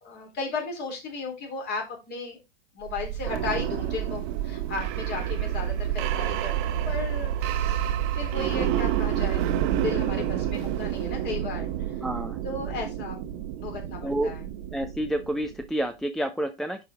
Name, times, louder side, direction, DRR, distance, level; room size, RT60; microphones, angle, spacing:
voice 1, 0.0-2.4 2.7-11.7 12.4-13.2 13.6-14.4, left 4 dB, 35° left, 2 dB, 3.8 m, -35 dB
sound 1, 2.9-15.6, right 11 dB, 40° right, 1.3 m, -29 dB
voice 2, 12.0-12.4 14.0-14.3 14.7-16.8, right 1 dB, ahead, 10 dB, 0.6 m, -29 dB
10.5 x 5.0 x 3.6 m, 0.25 s
figure-of-eight pair, 100°, 31 cm